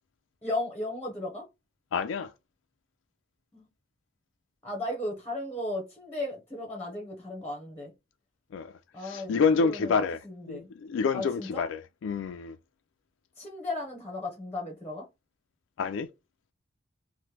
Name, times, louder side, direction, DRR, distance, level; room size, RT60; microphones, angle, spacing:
voice 1, 0.4-1.4 3.5-3.7 4.6-7.9 8.9-10.7 11.1-11.7 13.4-15.1, left 1 dB, 10° left, 0.7 m, -35 dB
voice 2, 1.9-2.3 8.5-8.7 9.0-10.2 10.5-12.6 15.8-16.1, left 5 dB, 75° left, 0.3 m, -28 dB
3.0 x 2.1 x 3.2 m
head